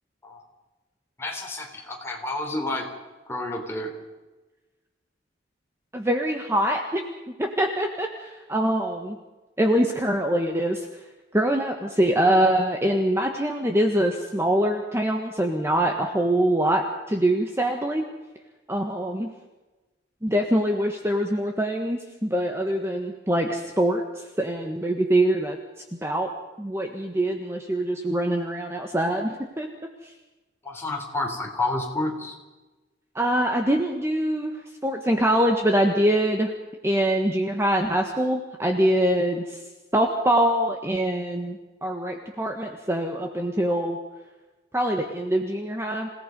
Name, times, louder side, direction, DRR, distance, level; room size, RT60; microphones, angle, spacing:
voice 1, 1.2-2.9 3.3-3.9 30.6-32.4, left 2 dB, 15° left, 0 dB, 3.9 m, -30 dB
voice 2, 5.9-7.0 7.4-9.2 9.6-10.9 11.3-18.1 18.7-19.3 20.2-25.6 26.0-26.3 26.6-29.7 33.1-34.5 34.8-36.5 36.8-39.6 39.9-44.0 44.7-46.1, right 1 dB, 15° right, 3 dB, 1.4 m, -24 dB
27.5 x 17.5 x 5.4 m, 1.2 s
head